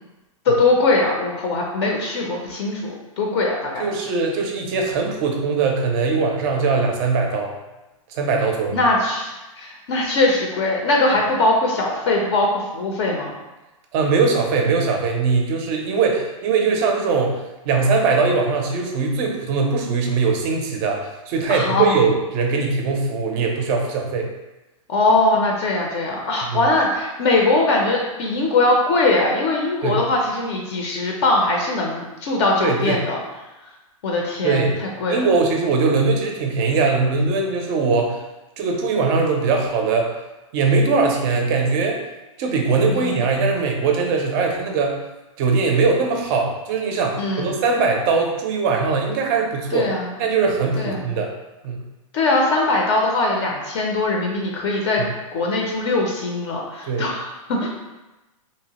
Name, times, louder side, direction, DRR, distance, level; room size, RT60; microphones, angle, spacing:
voice 1, 0.4-3.8 8.7-13.4 21.5-22.0 24.9-33.2 34.0-35.2 42.9-43.2 47.2-47.5 49.7-50.2 50.8-51.1 52.1-55.0 55.3-57.7, left 2 dB, 50° left, -1 dB, 0.5 m, -21 dB
voice 2, 3.8-7.5 8.1-8.8 13.9-24.3 26.5-26.6 29.8-30.0 32.6-33.0 34.4-34.8 35.1-38.2 38.6-40.1 40.5-42.0 42.4-45.0 45.4-49.9 50.2-51.3 51.6-51.8 55.0-55.1 56.9-57.1, right 4 dB, 35° right, 2 dB, 0.4 m, -21 dB
2.8 x 2.0 x 2.8 m, 1.0 s
hypercardioid pair, 145°, 18 cm